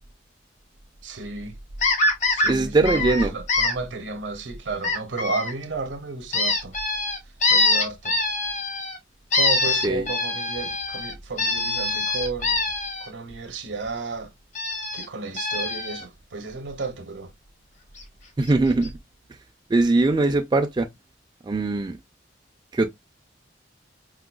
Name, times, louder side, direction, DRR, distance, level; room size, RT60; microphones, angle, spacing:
voice 1, 1.0-1.6 2.3-6.8 7.5-8.2 9.3-12.7 13.0-14.3 14.9-17.3, right 3 dB, 75° right, 0.7 m, -33 dB
sound 1, 1.8-2.5 2.9-3.7 4.8-5.5 6.3-9.0 9.3-13.1 14.6-15.0 15.4-16.0 18.0-18.1 18.4-18.5 18.8-18.9, left 3 dB, 40° left, 0.8 m, -24 dB
voice 2, 2.5-3.3 9.8-10.1 18.4-18.9 19.7-20.9 21.5-22.0 22.7-22.9, right 2 dB, 25° right, 0.3 m, -21 dB
4.8 x 2.2 x 2.2 m
head